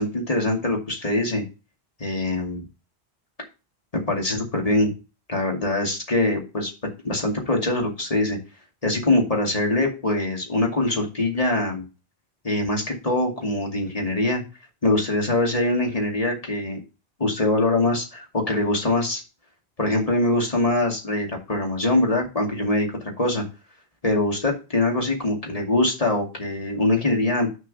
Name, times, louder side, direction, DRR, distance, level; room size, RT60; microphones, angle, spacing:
voice 1, 0.0-1.4 2.0-2.6 3.9-4.9 5.3-6.7 7.0-8.4 8.8-11.8 12.4-14.4 14.8-16.8 17.2-19.2 19.8-23.4 24.0-27.5, left 2 dB, 35° left, 1 dB, 2.4 m, -23 dB
6.8 x 5.3 x 5.4 m, 0.30 s
omnidirectional pair, 1.1 m